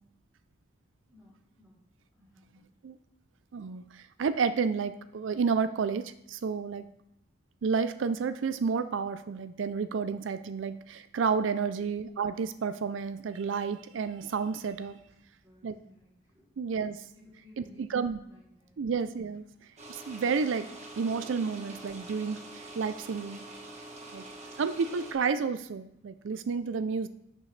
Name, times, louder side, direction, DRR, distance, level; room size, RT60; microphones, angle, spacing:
voice 1, 1.1-1.8 2.1-2.7 15.4-16.5 17.1-18.0 18.2-18.8 24.0-24.3, left 1 dB, 15° right, -10 dB, 3.1 m, -58 dB
voice 2, 3.5-6.8 7.6-15.0 15.6-15.8 16.6-17.0 17.9-18.2 18.8-19.4 19.9-20.7 21.0-23.4 24.1-24.2 24.6-27.1, right 5 dB, 80° right, 12 dB, 0.4 m, -31 dB
sound 1, 19.8-25.1, right 2 dB, 35° right, 1.4 m, -45 dB
10.5 x 6.6 x 3.2 m, 0.78 s
head